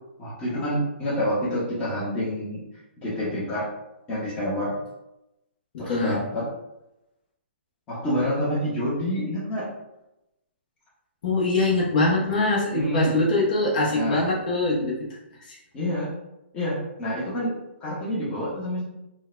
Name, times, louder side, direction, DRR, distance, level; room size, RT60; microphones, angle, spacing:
voice 1, 0.2-2.6 3.0-3.7 4.1-4.8 5.8-6.5 7.9-9.7 12.7-13.2 13.9-14.3 15.7-16.1 16.5-17.6 17.8-18.8, equal, 15° left, -8 dB, 0.9 m, -28 dB
voice 2, 5.7-6.2 11.2-15.6, left 2 dB, 45° left, -4 dB, 0.9 m, -23 dB
3.8 x 2.2 x 2.5 m, 0.91 s
hypercardioid pair, 160°, 7 cm